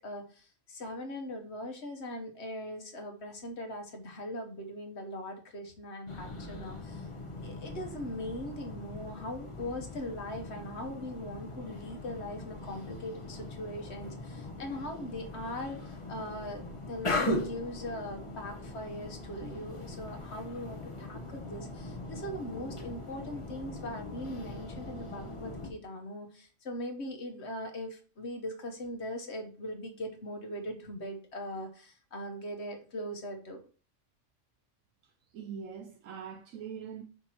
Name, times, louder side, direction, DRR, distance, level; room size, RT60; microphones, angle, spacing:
voice 1, 0.0-7.1 7.4-33.6, left 1 dB, 60° left, 1.4 m, -40 dB
sound 1, 6.1-25.7, left 2 dB, 25° left, 1.0 m, -40 dB
voice 2, 35.3-37.0, right 7 dB, 90° right, 1.0 m, -42 dB
5.2 x 4.4 x 4.4 m
omnidirectional pair, 1.3 m